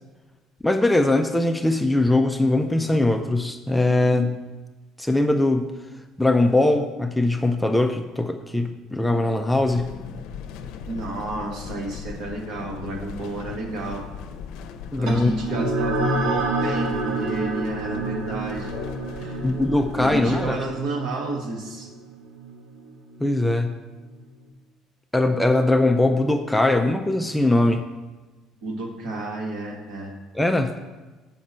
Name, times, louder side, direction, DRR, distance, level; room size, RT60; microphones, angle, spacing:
voice 1, 0.6-4.4 5.0-5.7 6.2-9.9 14.9-15.3 19.4-20.6 23.2-23.8 25.1-27.8 30.3-30.7, left 2 dB, 5° left, 5 dB, 0.4 m, -21 dB
sound 1, 9.6-20.7, left 7 dB, 80° left, 0.6 m, -39 dB
voice 2, 10.9-14.0 15.0-18.7 19.2-19.5 19.9-21.9 28.6-30.1, right 2 dB, 60° right, 1 dB, 1.6 m, -31 dB
sound 2, 15.1-23.9, right 2 dB, 90° right, 1.8 m, -29 dB
7.4 x 5.9 x 5.4 m, 1.2 s
cardioid pair, 145°, 0 cm